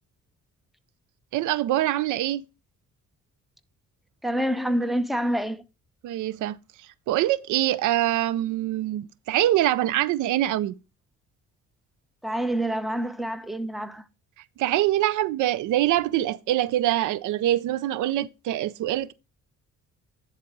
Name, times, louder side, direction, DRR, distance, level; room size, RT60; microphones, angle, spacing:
voice 1, 1.3-2.4 6.0-6.6 7.1-10.7 14.6-19.1, right 13 dB, 85° right, 0.5 m, -24 dB
voice 2, 4.2-5.6 12.2-14.0, right 1 dB, ahead, 0.7 m, -27 dB
10.5 x 4.1 x 4.7 m
cardioid pair, 90°, 30 cm